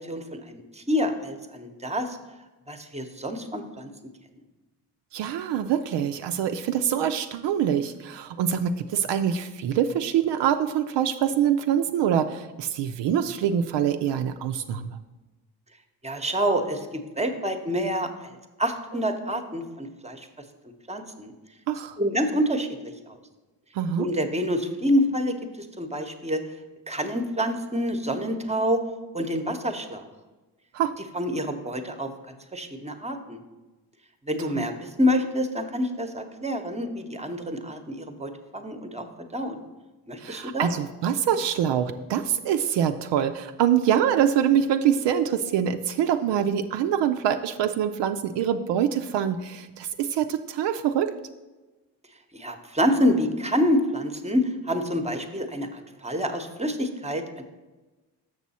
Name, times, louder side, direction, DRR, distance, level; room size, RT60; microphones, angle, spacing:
voice 1, 0.0-2.2 2.7-3.9 16.0-18.3 18.6-20.3 20.9-21.3 22.0-23.2 24.0-26.4 26.9-28.8 29.1-30.0 31.1-32.1 32.5-33.4 34.3-39.6 40.1-40.7 52.3-57.4, equal, 15° right, 6 dB, 0.9 m, -27 dB
voice 2, 5.1-15.0 21.7-22.0 23.7-24.1 30.7-31.0 34.5-34.7 40.2-51.1, right 9 dB, 70° right, 8 dB, 0.5 m, -25 dB
6.6 x 6.2 x 4.2 m, 1.2 s
supercardioid pair, 55°, 44 cm